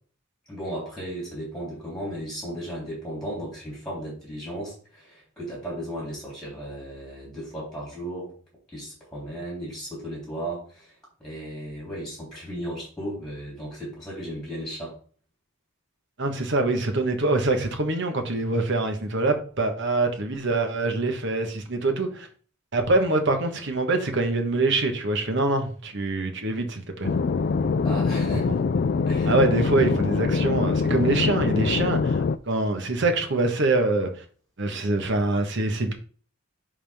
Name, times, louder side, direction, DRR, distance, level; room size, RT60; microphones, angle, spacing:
voice 1, 0.5-8.3 8.7-10.9 11.2-15.0 27.8-28.6 29.1-29.3, right 1 dB, ahead, 3.2 m, -35 dB
voice 2, 16.2-22.3 22.7-27.1 29.3-34.1 34.6-35.9, right 2 dB, 55° right, 1.3 m, -24 dB
sound 1, 27.0-32.4, left 4 dB, 45° left, 0.3 m, -24 dB
10.0 x 3.7 x 3.5 m
head